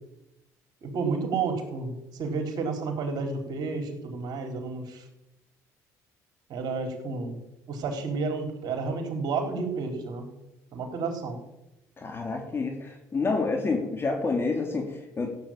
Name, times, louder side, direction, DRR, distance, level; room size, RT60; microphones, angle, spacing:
voice 1, 0.8-5.0 6.5-7.4 7.7-10.3 10.7-11.4, right 4 dB, 60° right, 5 dB, 4.1 m, -31 dB
voice 2, 12.0-15.3, left 3 dB, 30° left, 2 dB, 3.0 m, -28 dB
15.0 x 8.5 x 9.0 m, 0.93 s
supercardioid pair, 80°, 8 cm